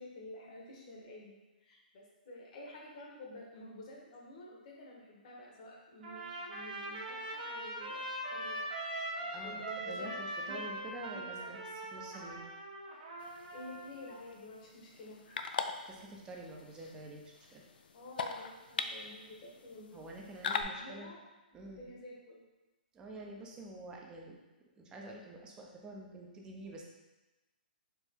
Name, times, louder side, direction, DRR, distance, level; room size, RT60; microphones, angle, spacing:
voice 1, 0.0-1.4 1.6-8.6 9.2-11.5 13.5-15.4 17.9-20.0 20.7-21.2 21.8-22.4, left 2 dB, 50° left, -2 dB, 1.1 m, -50 dB
Trumpet, 6.0-14.1, right 1 dB, 60° right, 1.0 m, -41 dB
voice 2, 9.3-12.5 15.9-17.6 19.9-21.1 21.5-21.8 22.9-24.4 24.8-26.9, right 2 dB, 15° right, -1 dB, 0.6 m, -48 dB
sound 1, 13.2-20.6, left 5 dB, 70° left, 0.3 m, -42 dB
4.5 x 2.5 x 3.4 m, 1.1 s
hypercardioid pair, 145°, 5 cm